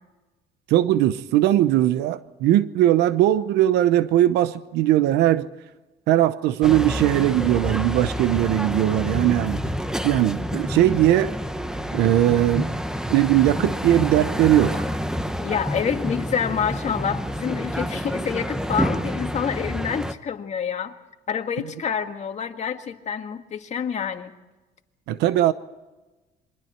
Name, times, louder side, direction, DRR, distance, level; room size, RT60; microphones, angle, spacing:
voice 1, 0.7-5.5 6.1-9.7 10.0-11.3 11.9-12.7 13.1-14.9 25.1-25.5, right 13 dB, 85° right, 0.8 m, -19 dB
sound 1, 6.6-20.1, equal, 5° right, 1.1 m, -28 dB
voice 2, 15.4-21.0 21.3-24.3, left 7 dB, 40° left, 1.9 m, -27 dB
27.5 x 23.5 x 4.5 m
cardioid pair, 110°, 17 cm